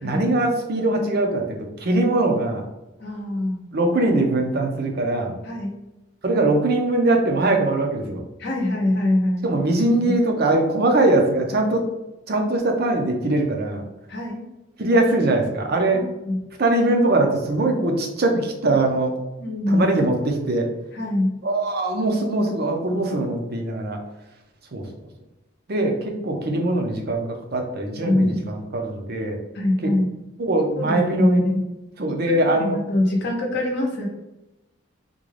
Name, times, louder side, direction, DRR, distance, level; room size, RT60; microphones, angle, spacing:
voice 1, 0.0-2.6 3.7-5.3 6.2-8.2 9.4-11.8 12.3-13.8 14.8-16.0 16.6-19.1 19.7-20.7 21.4-24.0 24.7-24.9 25.7-29.4 29.8-29.9 30.4-31.4 32.0-32.8, right 2 dB, 50° right, 3 dB, 0.6 m, -21 dB
voice 2, 3.0-3.6 5.4-5.7 8.4-9.4 10.0-10.2 14.1-14.5 16.2-16.4 19.4-19.8 20.9-21.3 28.0-28.4 29.5-30.1 30.8-31.6 32.3-34.1, left 1 dB, 55° left, -1 dB, 0.7 m, -23 dB
3.7 x 2.3 x 3.2 m, 0.97 s
head